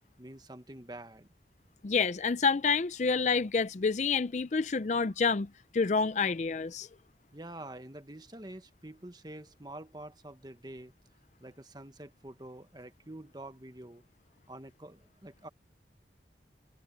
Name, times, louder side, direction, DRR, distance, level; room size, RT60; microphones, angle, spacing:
voice 1, 0.2-1.3 7.3-10.9 11.4-14.0 14.5-15.5, right 1 dB, 25° right, 1.2 m, -47 dB
voice 2, 1.8-5.5 5.7-6.9, left 5 dB, 40° left, 0.4 m, -28 dB
head